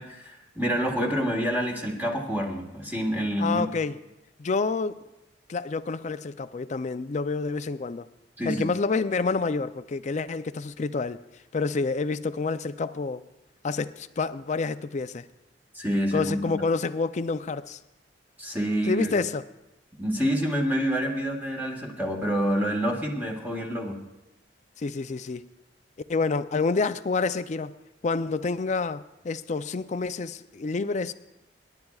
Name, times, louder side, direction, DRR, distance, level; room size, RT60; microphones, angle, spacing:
voice 1, 0.0-3.7 8.4-8.7 15.7-16.4 18.4-19.1 20.0-24.0, equal, 10° right, 0 dB, 1.4 m, -27 dB
voice 2, 3.4-4.0 4.4-4.9 5.5-8.1 8.5-11.2 11.5-13.2 13.6-15.2 16.1-17.8 18.9-19.5 24.8-25.5 26.1-27.8 28.0-31.1, left 4 dB, 40° left, 13 dB, 0.4 m, -28 dB
27.0 x 10.5 x 2.4 m, 0.96 s
head